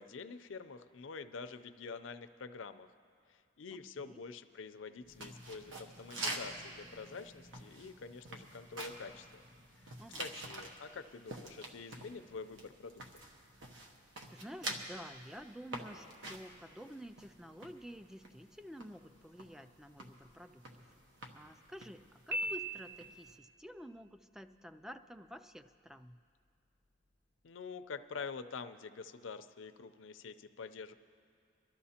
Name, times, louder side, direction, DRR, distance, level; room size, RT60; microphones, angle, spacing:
voice 1, 0.0-2.9 3.3-9.4 9.8-9.9 10.2-13.0 27.4-30.9, left 4 dB, 80° left, 10 dB, 0.6 m, -47 dB
voice 2, 3.7-4.2 10.0-10.2 14.3-20.9 21.3-26.2, equal, 5° right, 10 dB, 0.3 m, -50 dB
sound 1, 5.0-10.7, equal, 30° right, 1.8 m, -61 dB
sound 2, 5.1-23.4, right 1 dB, 75° right, 1.2 m, -48 dB
Piano, 22.3-23.4, right 1 dB, 55° right, 0.9 m, -38 dB
25.5 x 12.5 x 2.9 m, 2.3 s
head